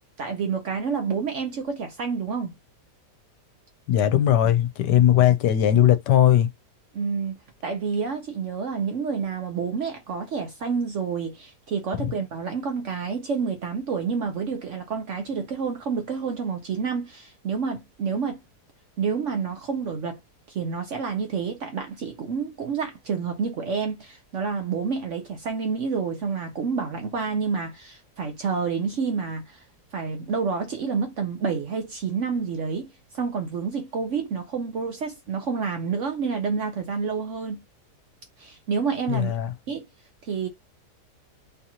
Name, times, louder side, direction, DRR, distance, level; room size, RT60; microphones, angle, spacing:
voice 1, 0.2-2.5 6.9-18.4 19.0-20.2 20.5-29.6 29.9-37.6 38.4-39.4 39.7-39.9 40.2-40.5, right 5 dB, 60° right, 0.8 m, -29 dB
voice 2, 3.9-6.5 39.1-39.5, left 11 dB, 80° left, 1.2 m, -19 dB
3.6 x 2.8 x 2.8 m
omnidirectional pair, 1.8 m